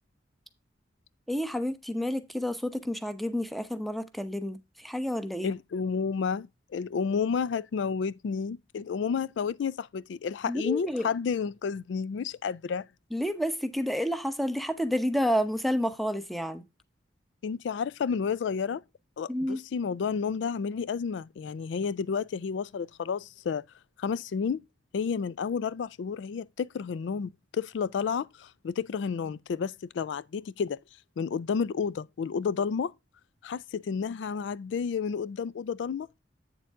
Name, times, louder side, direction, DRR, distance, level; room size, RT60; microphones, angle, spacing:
voice 1, 1.3-5.5 10.4-11.1 13.1-16.6 19.3-19.6, equal, ahead, 0.8 m, -30 dB
voice 2, 5.4-12.9 17.4-18.8 19.2-23.6 24.0-24.6 24.9-30.8 31.2-32.9 33.4-36.2, left 6 dB, 70° left, 0.3 m, -31 dB
8.3 x 6.9 x 3.5 m
head